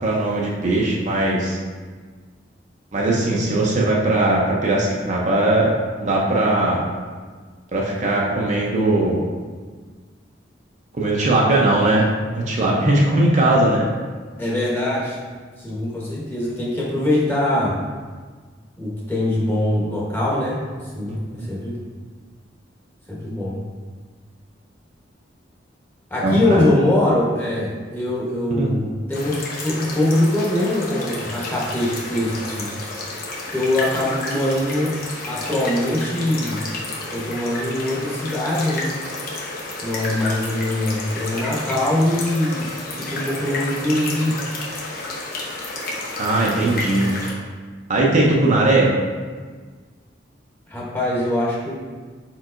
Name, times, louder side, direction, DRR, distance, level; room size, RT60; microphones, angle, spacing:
voice 1, 0.0-1.6 2.9-6.8 7.7-9.2 11.0-12.1 12.3-13.9 21.1-21.5 26.2-26.6 28.6-28.7 46.2-47.1 47.9-48.9, right 2 dB, 40° right, -3 dB, 0.6 m, -19 dB
voice 2, 14.4-15.2 15.6-17.8 18.8-21.8 23.1-23.6 26.1-32.7 33.5-35.0 35.2-36.7 37.1-38.9 39.8-42.7 43.0-44.4 50.7-51.8, left 1 dB, 10° left, -6 dB, 1.0 m, -22 dB
sound 1, 29.1-47.3, left 2 dB, 55° left, 0.8 m, -31 dB
4.6 x 4.4 x 2.5 m, 1.5 s
head